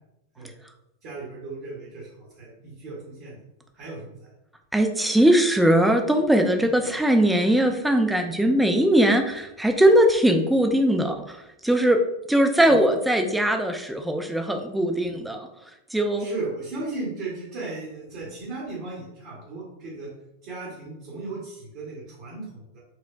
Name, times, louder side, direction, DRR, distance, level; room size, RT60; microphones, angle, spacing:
voice 1, 1.0-3.4 3.7-4.3 6.5-6.7 12.7-12.8 15.0-15.2 16.2-20.1 20.4-22.8, right 3 dB, 45° right, -6 dB, 1.1 m, -36 dB
voice 2, 4.7-15.5 15.9-16.3, right 1 dB, 5° right, 5 dB, 0.4 m, -20 dB
4.3 x 2.2 x 2.4 m, 0.89 s
figure-of-eight pair, 90°, 0 cm